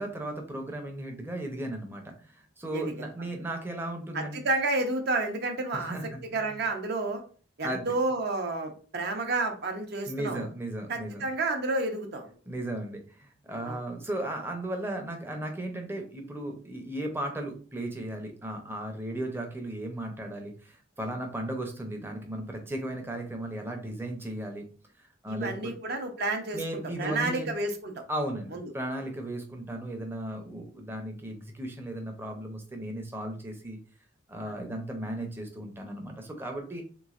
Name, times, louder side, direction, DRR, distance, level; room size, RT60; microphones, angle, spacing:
voice 1, 0.0-4.4 5.7-6.6 7.6-7.9 10.1-11.3 12.5-24.6 25.2-25.7 26.5-27.5 28.1-33.8 34.3-36.8, right 1 dB, 10° right, 3 dB, 0.6 m, -36 dB
voice 2, 4.1-6.0 6.3-7.2 7.6-10.5 10.9-12.3 13.6-13.8 25.3-26.6 27.0-27.9 28.5-28.6 34.4-34.5, right 2 dB, 55° right, 5 dB, 0.6 m, -30 dB
3.4 x 3.0 x 2.4 m, 0.40 s
head